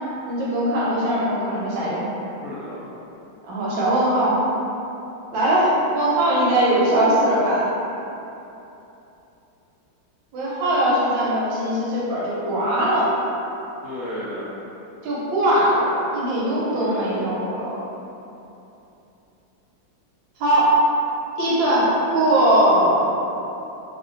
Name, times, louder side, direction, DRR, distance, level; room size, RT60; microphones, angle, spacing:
voice 1, 0.3-2.1 3.5-4.4 5.3-7.7 10.3-13.1 15.0-17.7 20.4-20.7 21.4-23.1, right 1 dB, 75° right, -7 dB, 1.4 m, -20 dB
voice 2, 2.4-2.8 13.8-14.5 16.7-17.1, left 1 dB, 75° left, -10 dB, 0.9 m, -33 dB
3.3 x 2.5 x 2.5 m, 2.9 s
omnidirectional pair, 2.1 m